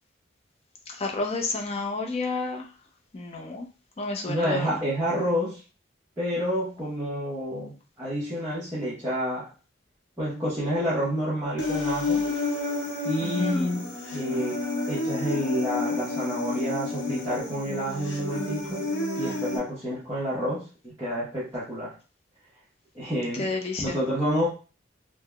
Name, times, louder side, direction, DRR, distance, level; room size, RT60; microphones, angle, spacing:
voice 1, 0.9-2.7 3.1-3.7 4.0-4.8 13.2-13.6 23.4-24.0, left 3 dB, 30° left, 1 dB, 0.5 m, -31 dB
voice 2, 4.3-5.6 6.2-9.5 10.2-12.3 13.0-18.9 19.2-21.9 22.9-23.5 23.8-24.5, equal, 15° right, -11 dB, 0.8 m, -29 dB
Human voice, 11.6-19.6, left 2 dB, 60° left, 0.8 m, -30 dB
3.5 x 2.0 x 2.2 m, 0.33 s
head